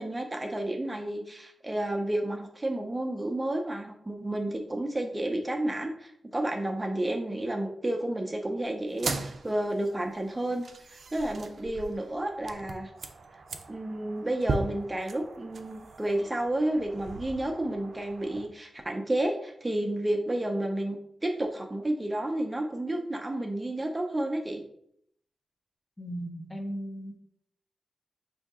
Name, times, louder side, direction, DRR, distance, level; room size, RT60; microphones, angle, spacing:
voice 1, 0.0-12.9 13.7-21.0 21.2-24.6, right 1 dB, 20° right, 3 dB, 0.6 m, -31 dB
sound 1, 8.9-18.5, right 3 dB, 70° right, 0.4 m, -39 dB
voice 2, 26.0-27.2, equal, 20° left, 4 dB, 0.7 m, -37 dB
5.0 x 2.7 x 3.5 m, 0.69 s
wide cardioid pair, 90°, 0 cm